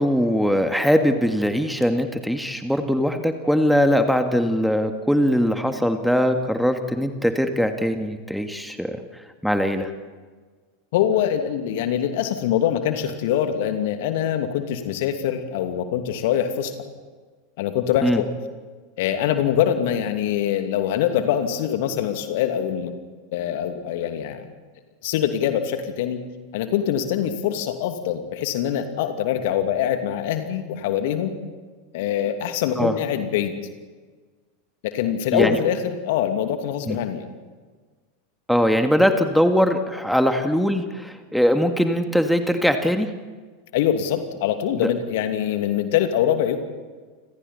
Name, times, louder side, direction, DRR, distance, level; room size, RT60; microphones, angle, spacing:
voice 1, 0.0-9.9 18.0-18.2 32.8-32.9 35.3-35.6 36.9-37.0 38.5-43.1 44.8-44.9, equal, ahead, 6 dB, 2.0 m, -21 dB
voice 2, 10.9-16.7 17.6-18.3 19.0-22.9 23.3-24.5 25.0-26.2 26.5-31.3 31.9-33.5 34.8-37.3 43.7-46.6, left 10 dB, 55° left, 6 dB, 2.6 m, -24 dB
30.0 x 27.0 x 4.3 m, 1.4 s
figure-of-eight pair, 85°, 0 cm